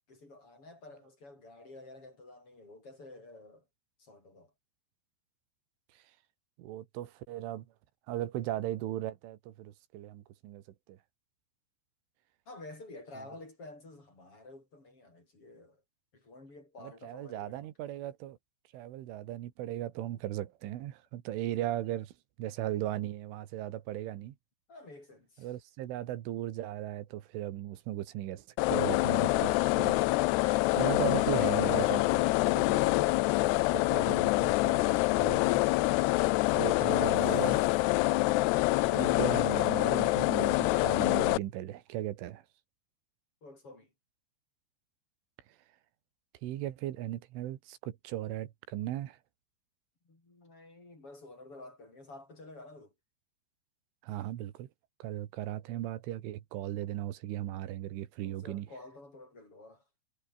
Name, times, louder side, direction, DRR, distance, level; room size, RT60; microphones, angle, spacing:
voice 1, 0.1-3.7 4.0-4.5 12.5-15.8 16.1-17.7 24.7-25.5 36.2-38.4 38.7-38.9 43.4-43.9 50.0-52.9 58.2-59.8, left 2 dB, 30° left, 8.2 m, -51 dB
voice 2, 6.6-7.7 8.1-10.6 10.9-11.0 16.8-18.4 18.7-22.1 22.4-24.4 25.4-30.0 30.4-33.1 33.4-35.6 36.5-37.7 38.9-42.4 46.4-49.2 54.0-54.7 55.0-58.7, right 13 dB, 90° right, 4.2 m, -37 dB
sound 1, 28.6-41.4, left 20 dB, 80° left, 2.4 m, -26 dB
omnidirectional pair, 5.5 m